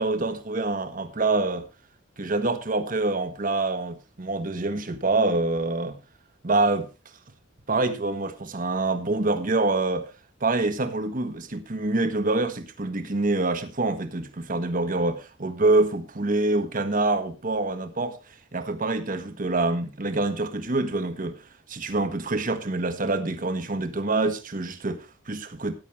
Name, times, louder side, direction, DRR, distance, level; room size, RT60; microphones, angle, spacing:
voice 1, 0.0-1.7 2.2-6.0 6.4-6.9 7.7-10.1 10.4-18.2 18.5-21.4 21.7-25.7, right 2 dB, 45° right, 1.3 m, -26 dB
14.0 x 10.0 x 3.3 m
head